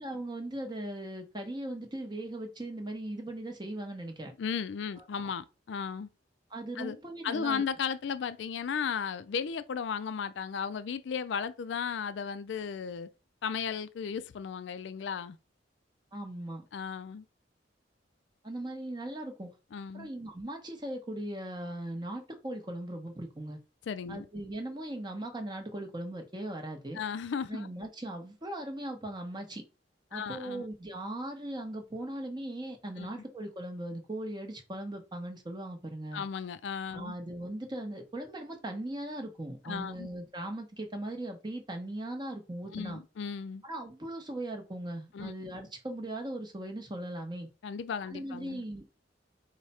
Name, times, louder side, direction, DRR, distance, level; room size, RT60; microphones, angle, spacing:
voice 1, 0.0-4.3 5.0-5.3 6.5-7.6 16.1-16.7 18.4-19.5 19.9-23.6 24.1-27.0 27.5-29.6 30.1-36.2 36.9-43.0 43.6-47.5 48.1-48.8, right 1 dB, 25° right, 0.9 m, -39 dB
voice 2, 4.4-6.1 6.8-7.0 7.2-13.1 13.4-15.4 16.7-17.2 19.7-20.1 23.9-24.3 26.9-27.7 30.1-30.7 33.0-33.1 36.1-37.2 39.6-40.1 42.7-43.6 45.1-45.3 47.6-48.6, left 6 dB, 70° left, 0.4 m, -35 dB
4.8 x 2.2 x 4.1 m
head